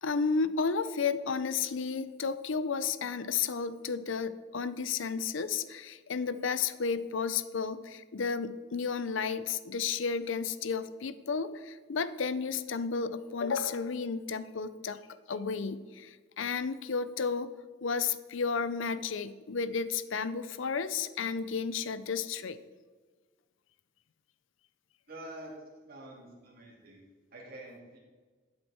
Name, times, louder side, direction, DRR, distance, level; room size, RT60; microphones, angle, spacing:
voice 1, 0.0-15.0 15.3-17.5 17.8-22.6, left 5 dB, 70° left, 14 dB, 0.6 m, -32 dB
voice 2, 25.1-25.5 25.8-27.1 27.3-27.8, right 1 dB, 50° right, -4 dB, 3.2 m, -47 dB
12.5 x 7.8 x 4.4 m, 1.4 s
head